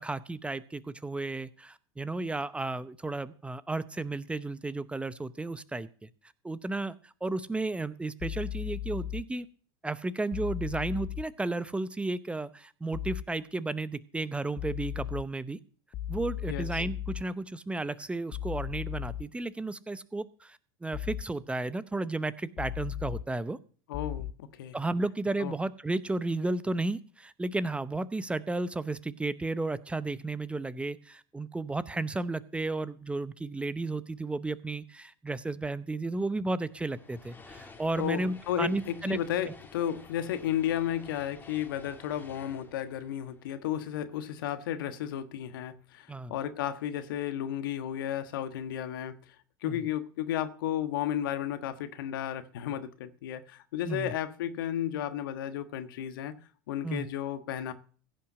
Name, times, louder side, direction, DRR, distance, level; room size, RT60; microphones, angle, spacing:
voice 1, 0.0-6.1 6.4-9.5 9.8-15.6 16.1-23.6 24.7-39.2 46.1-46.3 49.6-49.8 53.9-54.1 56.8-57.1, right 2 dB, 10° right, 0.7 m, -33 dB
sound 1, 8.2-9.2 10.3-11.2 12.9-13.2 14.6-15.2 15.9-17.2 18.3-19.2 20.9-21.2 22.6-23.2 23.9-24.3, left 11 dB, 45° left, 0.8 m, -36 dB
voice 2, 16.5-16.8 23.9-24.8 25.4-25.5 38.0-49.3 49.6-56.4 56.7-57.7, left 10 dB, 80° left, 1.3 m, -33 dB
sound 2, 36.7-44.1, left 3 dB, 15° left, 1.9 m, -53 dB
16.0 x 5.7 x 7.5 m
hypercardioid pair, 100°, 11 cm